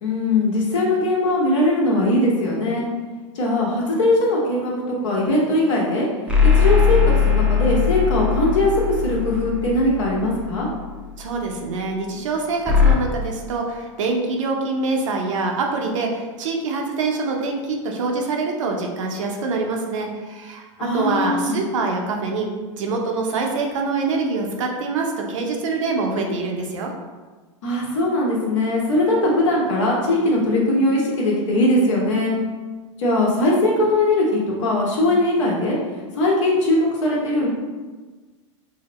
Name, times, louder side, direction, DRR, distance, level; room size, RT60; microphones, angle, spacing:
voice 1, 0.0-2.9 3.3-6.1 6.5-10.7 20.8-21.6 27.6-32.4 33.0-35.8 36.1-37.5, left 1 dB, 70° left, -3 dB, 1.2 m, -20 dB
sound 1, 6.3-10.9 12.7-12.9, left 6 dB, 5° right, 0.5 m, -19 dB
voice 2, 11.2-22.5 22.8-26.9, right 3 dB, 75° right, 1 dB, 0.7 m, -25 dB
4.8 x 2.1 x 3.0 m, 1.3 s
hypercardioid pair, 100°, 16 cm